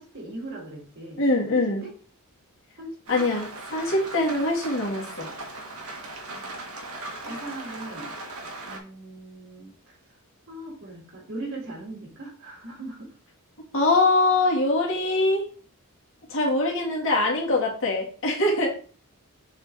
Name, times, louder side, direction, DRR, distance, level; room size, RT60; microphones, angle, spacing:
voice 1, 0.0-1.2 1.5-1.9 2.8-3.2 5.2-5.4 6.3-6.6 7.2-8.1 8.7-9.7 10.5-13.1 17.2-17.6, right 2 dB, 60° right, -2 dB, 2.9 m, -39 dB
voice 2, 1.2-1.8 3.1-5.3 13.7-15.4 16.3-18.7, left 2 dB, 60° left, -2 dB, 2.0 m, -23 dB
Rain, 3.1-8.8, right 2 dB, 75° right, 1.3 m, -38 dB
6.7 x 4.0 x 3.5 m, 0.40 s
head